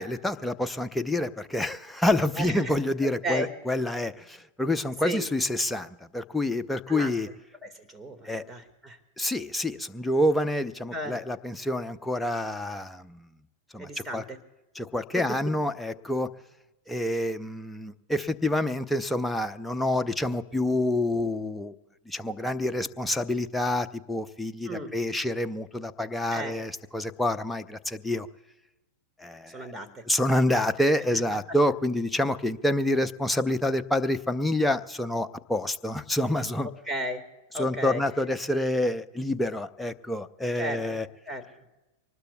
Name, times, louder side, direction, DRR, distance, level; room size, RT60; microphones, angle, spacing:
voice 1, 0.0-7.3 8.2-8.4 9.2-13.3 13.7-14.2 14.7-16.3 16.9-21.7 22.1-28.3 29.2-29.7 30.1-36.7 37.6-41.1, left 1 dB, 5° left, 9 dB, 0.7 m, -27 dB
voice 2, 2.4-2.7 3.0-3.5 5.0-5.2 6.9-7.1 7.6-9.0 10.9-11.2 13.8-14.4 15.1-15.4 24.7-24.9 26.3-26.6 29.5-30.0 31.1-31.2 31.5-31.6 36.6-37.2 37.5-38.0 40.6-41.0 41.3-41.4, right 1 dB, 10° right, 5 dB, 1.9 m, -34 dB
25.0 x 19.5 x 2.3 m, 1.0 s
figure-of-eight pair, 95°, 0 cm